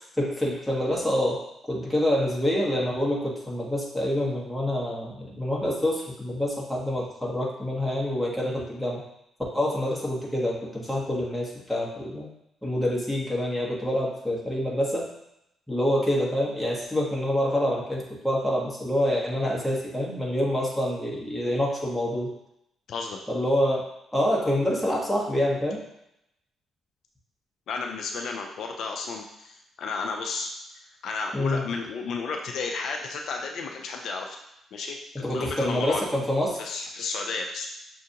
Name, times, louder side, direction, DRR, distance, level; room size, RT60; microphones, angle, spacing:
voice 1, 0.2-1.4 1.7-9.0 9.5-12.3 12.6-15.1 15.7-22.3 23.3-23.8 24.1-25.8 31.3-31.6 35.2-36.6, left 1 dB, 5° left, -3 dB, 1.2 m, -26 dB
voice 2, 22.9-23.2 27.7-30.5 31.0-34.4 34.7-36.0 36.6-37.7, left 4 dB, 70° left, 2 dB, 0.5 m, -32 dB
6.6 x 2.5 x 2.8 m, 0.80 s
cardioid pair, 90°, 0 cm